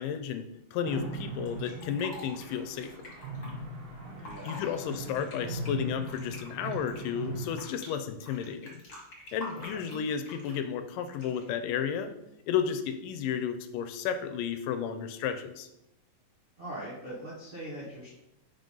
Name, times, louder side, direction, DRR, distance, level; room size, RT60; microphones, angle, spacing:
voice 1, 0.0-3.1 4.5-8.8 9.3-12.1 12.5-15.7, left 8 dB, 80° left, 9 dB, 2.1 m, -33 dB
sound 1, 0.8-7.6, right 2 dB, 60° right, 2.1 m, -40 dB
Fill (with liquid), 1.5-3.5 4.1-4.7 5.0-7.9 8.2-10.6 11.1-11.5, left 1 dB, 40° left, 2.3 m, -46 dB
voice 2, 4.2-4.8 9.5-9.8 16.6-18.1, right 1 dB, 90° right, -7 dB, 0.4 m, -42 dB
5.5 x 3.7 x 5.3 m, 0.84 s
omnidirectional pair, 3.8 m